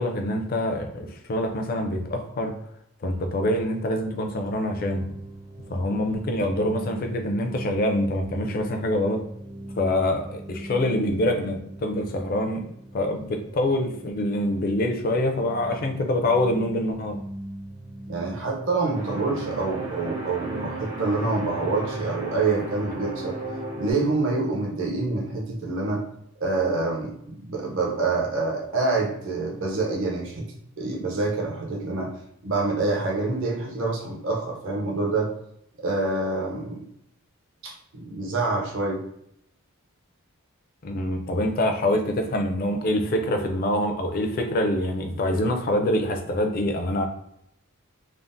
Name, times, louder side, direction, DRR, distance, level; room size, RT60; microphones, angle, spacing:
voice 1, 0.0-2.5 3.0-5.1 5.7-9.2 9.8-12.6 12.9-17.2 40.8-47.1, left 1 dB, 40° left, 4 dB, 0.4 m, -25 dB
sound 1, 3.5-21.1, right 1 dB, 15° right, 0.4 m, -41 dB
voice 2, 18.1-23.4 23.8-26.0 26.4-32.1 32.4-35.3 35.8-36.9 37.6-39.0, right 3 dB, 60° right, -2 dB, 0.7 m, -26 dB
sound 2, 18.9-23.9, right 1 dB, 90° right, 1.4 m, -34 dB
3.5 x 2.0 x 2.5 m, 0.74 s
head